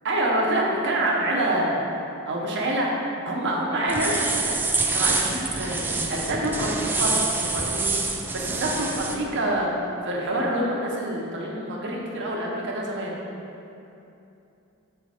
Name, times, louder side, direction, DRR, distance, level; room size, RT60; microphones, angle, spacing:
voice 1, 0.0-1.9 2.2-2.9 3.2-4.5 4.9-8.0 8.3-9.7 10.0-13.2, right 1 dB, 55° right, -3 dB, 1.1 m, -26 dB
sound 1, 3.9-9.2, right 3 dB, 10° right, 0.3 m, -26 dB
7.4 x 4.8 x 4.3 m, 2.9 s
head